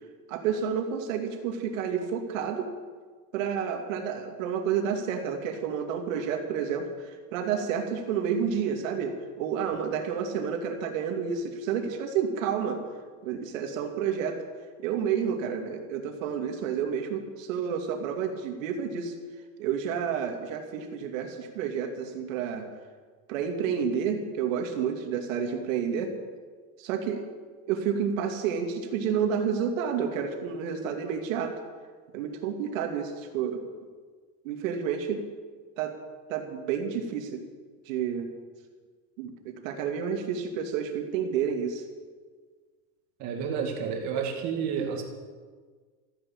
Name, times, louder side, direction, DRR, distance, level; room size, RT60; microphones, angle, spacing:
voice 1, 0.3-2.7 3.3-12.8 13.2-14.4 14.8-19.1 19.6-22.7 23.3-26.1 26.8-27.3 27.7-31.6 32.1-33.7 34.4-35.2 35.8-36.0 36.3-37.4 37.9-38.3 39.2-41.8, right 7 dB, 85° right, 4 dB, 2.6 m, -30 dB
voice 2, 43.2-45.0, right 6 dB, 45° right, 3 dB, 2.3 m, -30 dB
14.5 x 10.0 x 8.7 m, 1.5 s
cardioid pair, 165°, 38 cm